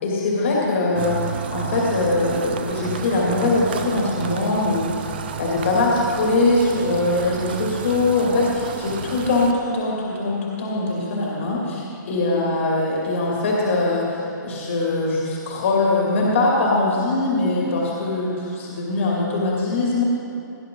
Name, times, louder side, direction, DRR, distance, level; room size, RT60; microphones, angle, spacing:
voice 1, 0.0-20.0, left 2 dB, 40° left, -4 dB, 2.6 m, -22 dB
sound 1, 1.0-9.5, right 7 dB, 30° right, 0.5 m, -32 dB
17.5 x 11.0 x 3.9 m, 2.7 s
hypercardioid pair, 175°, 11 cm